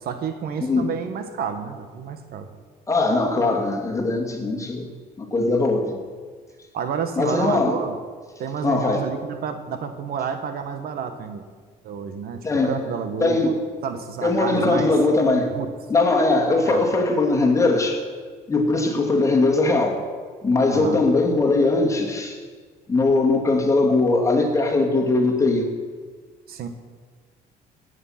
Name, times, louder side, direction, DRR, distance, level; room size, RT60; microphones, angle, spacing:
voice 1, 0.0-2.5 6.7-7.9 8.4-11.4 11.8-13.6 13.8-14.9 15.5-15.7 16.7-16.8 20.7-21.0 26.5-26.7, right 6 dB, 65° right, 8 dB, 1.3 m, -30 dB
voice 2, 0.6-0.9 2.9-4.9 5.2-6.0 7.2-7.8 8.6-9.1 12.4-12.7 13.2-13.6 14.2-15.5 15.9-18.0 18.5-20.0 20.4-22.4 22.9-25.7, left 3 dB, 20° left, 0 dB, 2.4 m, -20 dB
17.5 x 8.2 x 5.9 m, 1.5 s
cardioid pair, 110°, 17 cm